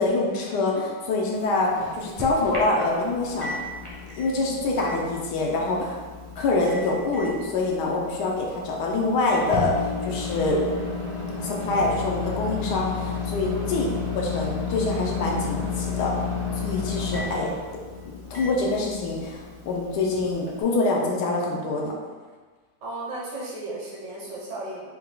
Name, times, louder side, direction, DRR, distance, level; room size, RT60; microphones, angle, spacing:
voice 1, 0.0-3.5 4.2-6.0 6.4-10.6 11.4-13.9 14.1-16.1 16.6-17.5 18.3-21.9, left 2 dB, 75° left, -2 dB, 1.2 m, -25 dB
Microwave oven, 1.3-20.6, left 4 dB, 25° right, 0.6 m, -33 dB
voice 2, 22.8-24.9, right 2 dB, 75° right, -5 dB, 1.7 m, -35 dB
4.4 x 2.3 x 3.7 m, 1.4 s
omnidirectional pair, 1.9 m